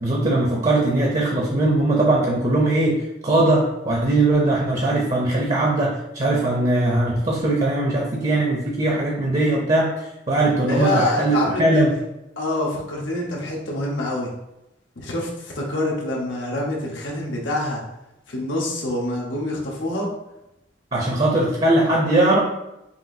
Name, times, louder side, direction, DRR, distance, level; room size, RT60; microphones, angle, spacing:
voice 1, 0.0-9.9 10.3-11.9 20.9-22.4, right 2 dB, 35° right, -2 dB, 0.6 m, -20 dB
voice 2, 10.6-11.9 12.4-14.3 15.0-17.8 18.3-20.1, left 1 dB, 85° left, -3 dB, 1.0 m, -26 dB
5.6 x 2.5 x 2.7 m, 0.91 s
head